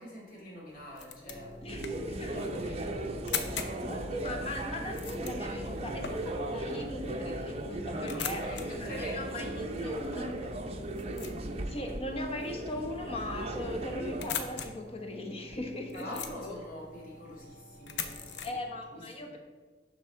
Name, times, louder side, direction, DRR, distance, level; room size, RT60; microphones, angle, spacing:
voice 1, 0.0-1.5 2.1-3.0 7.9-9.5 15.9-18.5 18.9-19.4, equal, 50° left, -4 dB, 2.5 m, -44 dB
sound 1, 0.7-18.5, left 7 dB, 90° left, 0.8 m, -43 dB
sound 2, 1.3-18.8, left 1 dB, 15° left, 1.3 m, -50 dB
voice 2, 1.6-2.4 3.8-10.5 11.7-16.6 18.4-19.4, left 1 dB, 35° left, 3 dB, 1.1 m, -39 dB
sound 3, 1.7-14.3, right 1 dB, 35° right, 0.6 m, -37 dB
11.5 x 4.0 x 4.6 m, 1.4 s
head